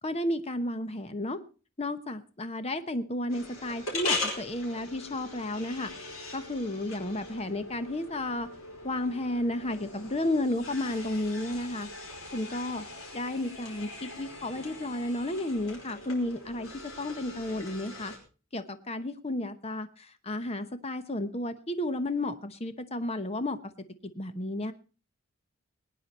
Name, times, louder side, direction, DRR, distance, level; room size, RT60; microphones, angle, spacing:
voice 1, 0.0-1.4 1.8-5.9 6.3-8.5 8.8-11.9 12.3-12.8 13.1-16.7 17.0-18.1 18.5-23.6 24.0-24.7, left 1 dB, 30° left, 10 dB, 1.0 m, -32 dB
sound 1, 3.3-18.2, left 2 dB, 80° left, 5.0 m, -40 dB
21.5 x 9.7 x 4.2 m, 0.34 s
head